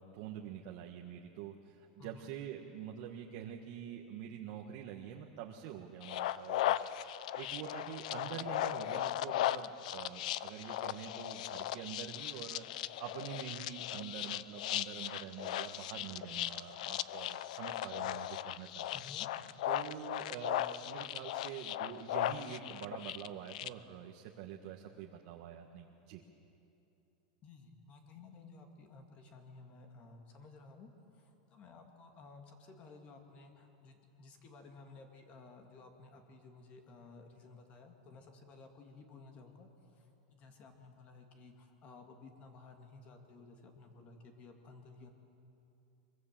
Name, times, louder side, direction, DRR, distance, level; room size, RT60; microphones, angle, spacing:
voice 1, 0.0-6.8 7.3-19.0 19.7-26.2, right 9 dB, 50° right, 1 dB, 1.5 m, -46 dB
voice 2, 2.0-2.3 18.9-19.3 27.4-45.1, left 3 dB, 35° left, 4 dB, 2.3 m, -55 dB
sound 1, 6.0-23.7, left 13 dB, 70° left, 0.6 m, -37 dB
23.5 x 23.0 x 7.6 m, 2.8 s
supercardioid pair, 155°, 4 cm